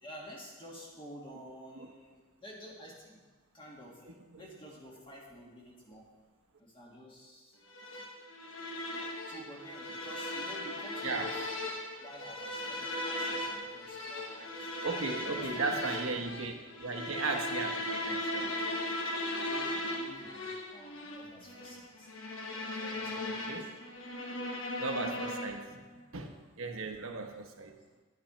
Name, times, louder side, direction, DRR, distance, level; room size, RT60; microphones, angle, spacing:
voice 1, 0.0-3.2 3.5-4.0 4.4-6.1 6.6-7.6 9.2-11.7 12.0-14.7 15.2-16.2 18.4-18.8 19.5-22.1 22.8-23.5, equal, 25° left, -3 dB, 1.7 m, -51 dB
sound 1, 7.7-25.8, left 1 dB, 65° left, 1.1 m, -38 dB
voice 2, 14.8-18.5 20.8-20.9 23.5-23.7 24.8-25.8 26.1-27.8, right 3 dB, 75° right, 5 dB, 1.0 m, -36 dB
9.4 x 8.6 x 4.3 m, 1.3 s
head